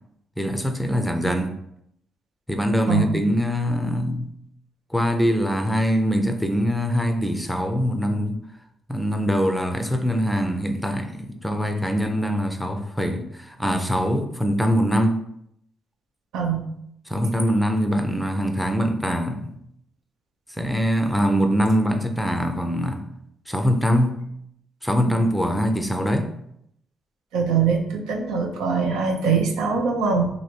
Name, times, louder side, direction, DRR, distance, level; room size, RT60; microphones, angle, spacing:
voice 1, 0.4-1.5 2.5-4.3 4.9-8.4 8.9-15.2 17.1-19.6 20.6-23.0 23.5-24.2 24.8-26.3, equal, ahead, 0.5 m, -23 dB
voice 2, 27.3-30.3, right 5 dB, 90° right, 0.6 m, -23 dB
3.0 x 2.7 x 4.3 m
cardioid pair, 90°, 0 cm